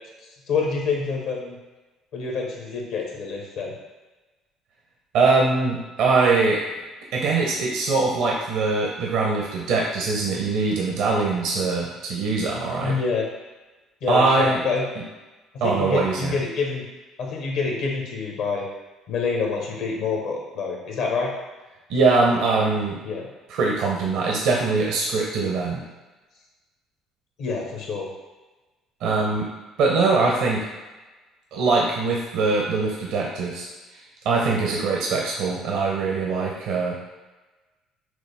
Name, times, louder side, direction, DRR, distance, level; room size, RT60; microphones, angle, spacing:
voice 1, 0.5-1.6 2.1-3.7 12.8-13.3 14.0-14.8 15.6-16.9 17.2-18.6 19.1-21.3 23.0-23.3 27.4-28.1, left 4 dB, 75° left, -1 dB, 1.0 m, -27 dB
voice 2, 5.1-6.6 7.1-12.9 14.1-14.6 15.6-16.3 21.9-23.0 23.5-25.8 29.0-29.5 29.8-30.7 31.5-33.6 34.2-37.0, right 3 dB, 75° right, -2 dB, 0.7 m, -22 dB
6.1 x 2.0 x 3.4 m, 1.2 s
supercardioid pair, 75°, 0 cm